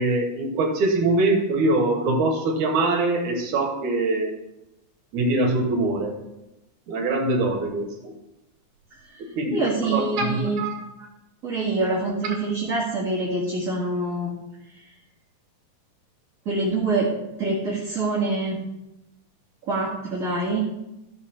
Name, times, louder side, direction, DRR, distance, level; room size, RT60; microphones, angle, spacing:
voice 1, 0.0-4.3 5.1-6.2 6.9-7.9 9.4-10.8, right 2 dB, 75° right, 2 dB, 2.7 m, -23 dB
voice 2, 9.5-10.6 11.4-14.4 16.5-17.1 17.4-18.6 19.7-20.6, right 2 dB, 30° right, -7 dB, 1.9 m, -25 dB
13.5 x 6.3 x 4.4 m, 0.92 s
omnidirectional pair, 3.6 m